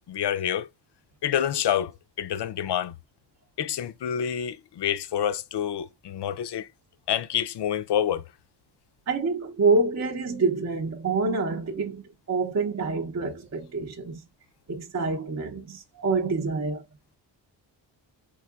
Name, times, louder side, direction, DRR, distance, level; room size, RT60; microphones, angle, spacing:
voice 1, 0.1-0.7 1.2-1.9 2.2-2.9 3.6-6.7 7.1-8.2, left 9 dB, 60° left, 0.5 m, -27 dB
voice 2, 9.1-14.2 14.7-16.8, right 3 dB, 35° right, 0.6 m, -27 dB
4.5 x 3.7 x 2.3 m
wide cardioid pair, 105°, 47 cm